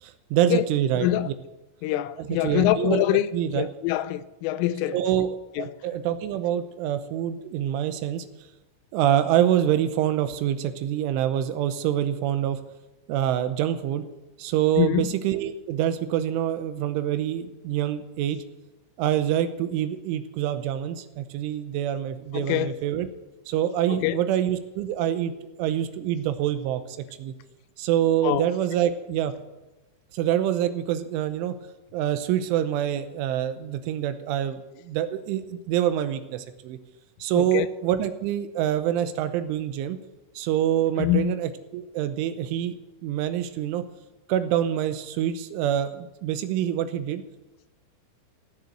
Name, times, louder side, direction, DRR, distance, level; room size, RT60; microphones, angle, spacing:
voice 1, 0.0-1.3 2.2-3.7 4.9-8.3 8.9-12.6 13.1-14.0 14.4-18.4 19.0-23.1 23.5-25.3 25.6-26.8 27.2-27.3 27.8-29.3 30.1-31.6 31.9-34.6 34.8-36.8 37.2-40.0 40.4-42.7 43.0-43.8 44.3-47.2, right 11 dB, 85° right, 3.3 m, -26 dB
voice 2, 1.8-5.0 5.6-5.8 14.8-15.1 22.3-22.8 23.9-24.2 28.2-28.5 37.3-37.7 41.0-41.3, left 14 dB, 90° left, 3.2 m, -25 dB
16.0 x 7.1 x 8.0 m
omnidirectional pair, 5.6 m